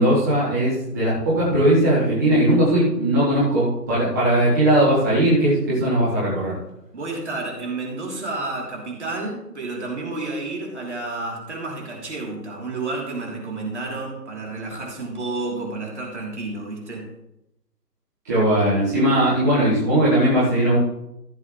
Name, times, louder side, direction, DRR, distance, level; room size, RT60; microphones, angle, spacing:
voice 1, 0.0-6.6 18.2-20.8, right 1 dB, 10° right, -10 dB, 1.4 m, -19 dB
voice 2, 6.9-17.1, right 2 dB, 45° right, -2 dB, 3.2 m, -30 dB
15.0 x 8.0 x 3.2 m, 0.84 s
figure-of-eight pair, 155°, 50 cm